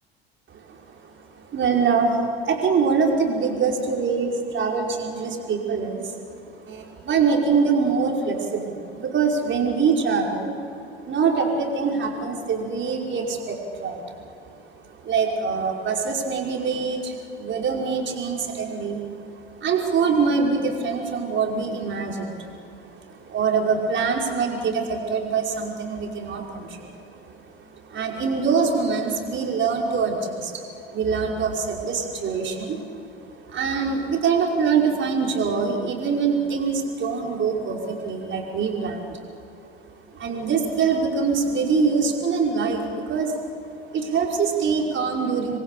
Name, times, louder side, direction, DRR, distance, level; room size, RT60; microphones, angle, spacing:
voice 1, 1.2-6.2 6.5-10.6 11.0-39.2 39.6-39.7 40.1-43.5 43.9-45.6, right 5 dB, 35° right, 0 dB, 5.4 m, -24 dB
28.0 x 23.0 x 8.5 m, 2.7 s
figure-of-eight pair, 70°, 32 cm